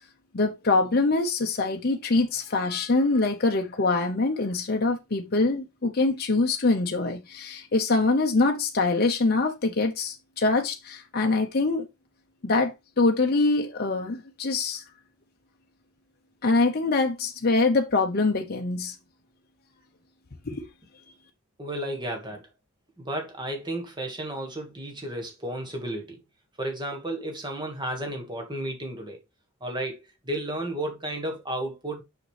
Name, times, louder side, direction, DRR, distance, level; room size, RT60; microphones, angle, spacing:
voice 1, 0.3-11.9 12.4-14.8 16.4-18.9 20.5-20.7, left 3 dB, 45° left, 0.7 m, -24 dB
voice 2, 21.6-22.5 23.0-26.2 26.6-29.2 29.6-32.0, right 1 dB, 20° right, 1.6 m, -33 dB
6.4 x 6.0 x 3.2 m
head